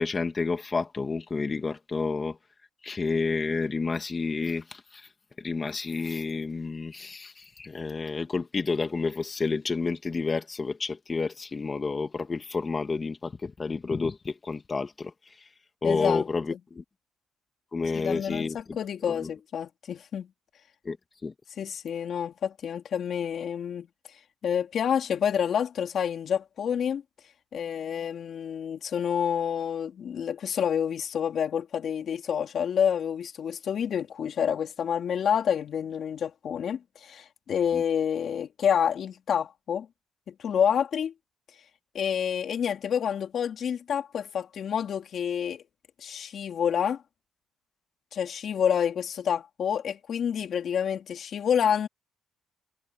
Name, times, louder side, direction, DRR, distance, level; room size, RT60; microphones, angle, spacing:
voice 1, 0.0-2.4 2.8-5.1 5.4-15.5 15.8-16.8 17.7-18.8 19.1-19.3 20.8-21.0 21.2-21.3 37.7-37.8, left 4 dB, 30° left, 1.9 m, -30 dB
voice 2, 15.8-16.2 16.5-16.6 17.9-20.3 21.6-23.9 24.4-27.0 27.5-39.9 40.3-41.1 41.9-45.6 46.0-47.0 48.1-51.9, left 8 dB, 60° left, 3.2 m, -28 dB
cardioid pair, 90°, 0 cm